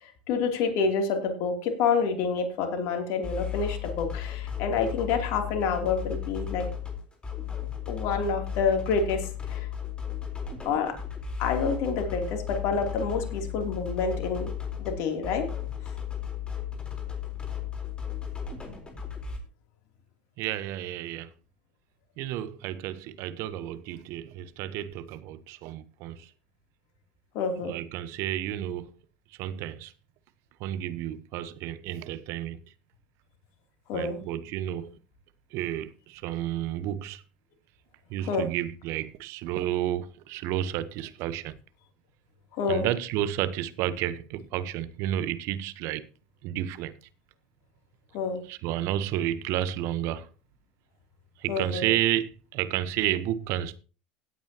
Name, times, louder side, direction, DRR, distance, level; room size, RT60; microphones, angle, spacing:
voice 1, 0.0-6.7 7.9-9.7 10.6-11.0 11.4-14.5 14.8-15.4 27.3-27.7 33.9-34.2 38.2-38.5 42.5-42.9 48.1-48.4 51.5-51.9, left 5 dB, 60° left, 2.9 m, -28 dB
sound 1, 3.2-19.4, left 9 dB, 20° left, 3.8 m, -35 dB
voice 2, 20.4-21.3 22.2-26.3 27.6-28.9 29.4-29.9 30.6-32.6 33.9-34.9 35.5-37.2 38.1-41.6 42.7-46.1 46.4-47.0 48.5-50.3 51.4-53.8, right 12 dB, 60° right, 1.0 m, -31 dB
17.0 x 8.7 x 2.9 m
hypercardioid pair, 80°, 5 cm